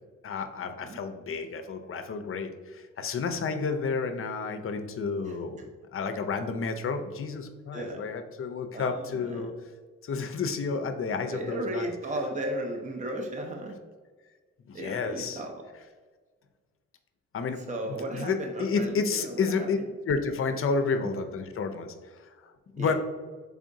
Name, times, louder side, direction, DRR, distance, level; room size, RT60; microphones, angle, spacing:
voice 1, 0.2-5.6 5.9-9.5 10.0-11.9 14.6-15.4 17.3-17.6 17.9-19.8 20.1-22.9, left 5 dB, 45° left, 7 dB, 0.5 m, -31 dB
voice 2, 5.3-5.7 7.7-8.0 8.7-9.5 11.3-13.8 14.7-15.6 17.7-19.7 20.9-21.1 22.8-22.9, right 1 dB, 25° right, 2 dB, 0.6 m, -35 dB
3.6 x 3.5 x 2.6 m, 1.4 s
supercardioid pair, 50°, 32 cm